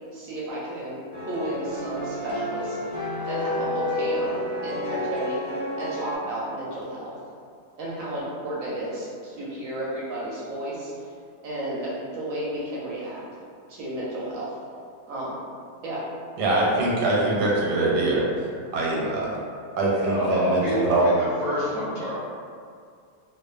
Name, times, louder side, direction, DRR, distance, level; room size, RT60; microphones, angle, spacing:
voice 1, 0.1-2.8 3.3-5.4 5.8-7.1 7.8-11.1 11.4-13.2 13.7-14.5 15.1-15.4 15.8-16.0, right 1 dB, 70° right, -7 dB, 0.9 m, -32 dB
sound 1, 1.1-6.2, left 1 dB, 25° left, 0.7 m, -30 dB
voice 2, 16.4-18.5 18.7-19.4 19.8-21.1, right 2 dB, 90° right, -4 dB, 1.2 m, -23 dB
voice 3, 19.9-22.1, equal, 55° left, -11 dB, 0.8 m, -27 dB
2.5 x 2.4 x 2.3 m, 2.2 s
omnidirectional pair, 1.7 m